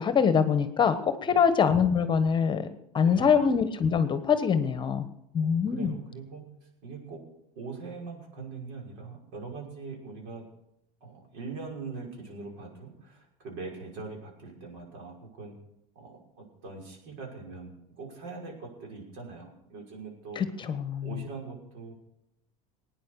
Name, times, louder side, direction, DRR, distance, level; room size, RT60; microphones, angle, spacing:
voice 1, 0.0-2.7 2.9-5.1 5.3-5.9 20.4-21.1, left 6 dB, 25° left, 11 dB, 1.2 m, -24 dB
voice 2, 3.0-3.5 5.4-6.4 6.8-7.2 7.6-10.5 11.0-15.6 16.0-20.4 21.0-21.9, right 4 dB, 70° right, 0 dB, 5.8 m, -42 dB
18.5 x 9.6 x 6.8 m, 0.83 s
supercardioid pair, 125°, 18 cm